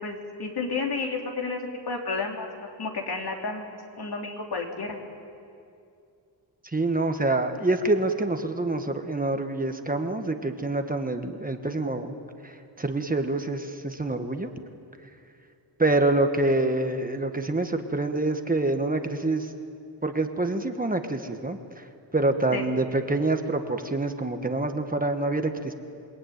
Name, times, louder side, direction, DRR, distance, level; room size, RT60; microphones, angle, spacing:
voice 1, 0.0-3.7 3.9-5.0 22.5-22.7, left 4 dB, 60° left, 1 dB, 3.4 m, -31 dB
voice 2, 6.7-12.2 12.4-12.5 12.8-14.5 15.8-19.5 20.0-21.6 22.1-25.7, right 2 dB, 20° right, 6 dB, 1.3 m, -26 dB
28.0 x 21.5 x 9.3 m, 2.5 s
wide cardioid pair, 140°, 43 cm